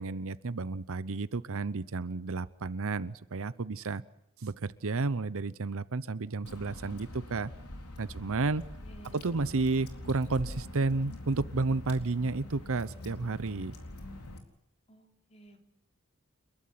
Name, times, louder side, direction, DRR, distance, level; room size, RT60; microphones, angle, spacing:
voice 1, 0.0-4.0 4.4-7.5 8.0-8.6 9.1-13.7, right 3 dB, 65° right, 16 dB, 0.8 m, -31 dB
Water / Drip, 6.4-14.4, left 1 dB, 80° left, 4.0 m, -44 dB
voice 2, 8.8-9.2 14.9-15.6, right 1 dB, 30° left, 3 dB, 3.7 m, -54 dB
30.0 x 12.5 x 9.7 m, 0.81 s
head